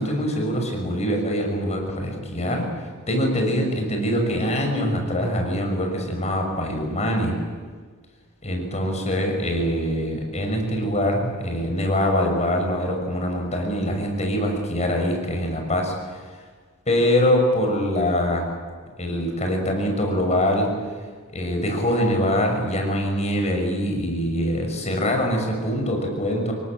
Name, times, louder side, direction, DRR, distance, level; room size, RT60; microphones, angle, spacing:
voice 1, 0.0-2.7 3.1-7.4 8.4-15.9 16.9-18.5 19.0-20.7 21.3-26.5, equal, 30° left, 2 dB, 6.4 m, -23 dB
27.5 x 23.0 x 9.0 m, 1.5 s
head